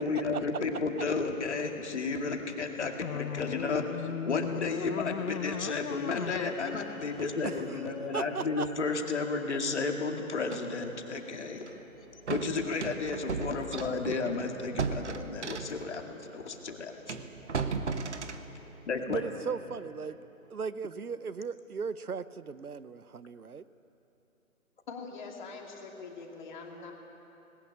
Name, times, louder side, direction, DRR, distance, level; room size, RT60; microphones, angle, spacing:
voice 1, 0.0-3.8 4.3-11.6 12.3-17.2 18.9-19.2, left 4 dB, 50° left, 3 dB, 2.3 m, -32 dB
sound 1, 3.0-8.1, left 8 dB, 85° left, 0.6 m, -38 dB
sound 2, 5.1-21.2, equal, 20° right, 7.1 m, -57 dB
voice 2, 7.2-7.8 8.1-8.7 19.1-20.1 20.5-23.6, right 5 dB, 85° right, 15 dB, 0.9 m, -37 dB
sound 3, 10.5-10.7 11.6-11.8 12.3-15.9 16.5-16.6 17.1-18.5, right 5 dB, 50° right, 1.3 m, -36 dB
voice 3, 24.9-26.9, left 4 dB, 30° left, 1 dB, 2.7 m, -43 dB
20.0 x 19.0 x 8.7 m, 2.9 s
figure-of-eight pair, 155°, 43 cm